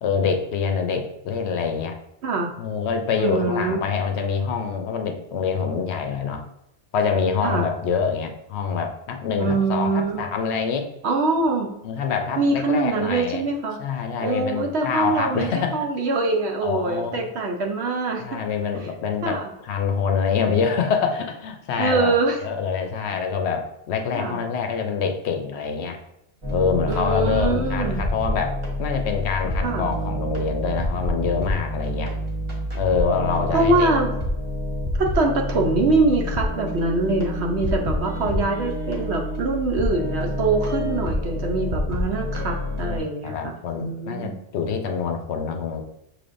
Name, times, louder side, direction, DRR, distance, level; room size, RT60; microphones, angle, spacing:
voice 1, 0.0-2.0 2.6-6.4 6.9-10.9 11.8-13.4 13.8-15.9 16.6-17.3 18.2-26.0 26.5-32.2 32.7-33.9 37.7-38.4 42.1-45.8, left 6 dB, 70° left, 5 dB, 0.8 m, -26 dB
voice 2, 3.2-3.8 7.4-7.6 9.4-10.2 11.0-11.7 12.4-13.8 14.2-18.4 19.2-19.5 21.8-22.4 24.1-24.4 26.9-28.0 29.6-29.9 33.5-34.1 35.0-44.4, right 3 dB, 65° right, 2 dB, 1.0 m, -23 dB
sound 1, 26.4-43.0, left 1 dB, 25° right, 1.0 m, -27 dB
6.1 x 3.3 x 2.5 m, 0.84 s
omnidirectional pair, 1.2 m